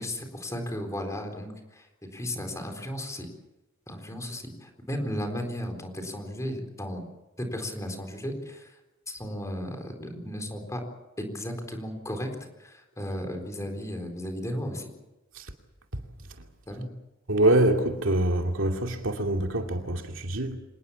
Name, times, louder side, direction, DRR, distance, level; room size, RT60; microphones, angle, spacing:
voice 1, 0.0-1.9 2.1-3.3 3.9-7.0 7.4-8.7 9.1-10.8 11.2-12.3 12.6-14.9 16.7-16.9, equal, 15° left, 4.1 m, -35 dB
voice 2, 17.3-20.6, right 1 dB, 70° right, 2.6 m, -24 dB
26.0 x 20.0 x 7.3 m
head